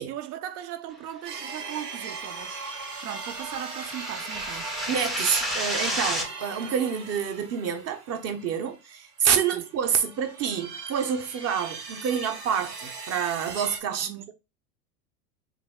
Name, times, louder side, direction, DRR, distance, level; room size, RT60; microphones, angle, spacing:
voice 1, 0.0-2.7 3.0-4.7 9.4-9.6 13.9-14.3, right 11 dB, 70° right, 0.7 m, -38 dB
sound 1, 1.2-9.2 9.6-13.8, right 4 dB, 85° right, 1.0 m, -39 dB
sound 2, 1.8-6.3, equal, ahead, 0.4 m, -32 dB
voice 2, 4.9-14.3, right 7 dB, 30° right, 0.7 m, -28 dB
3.3 x 2.3 x 3.4 m
hypercardioid pair, 85°, 48 cm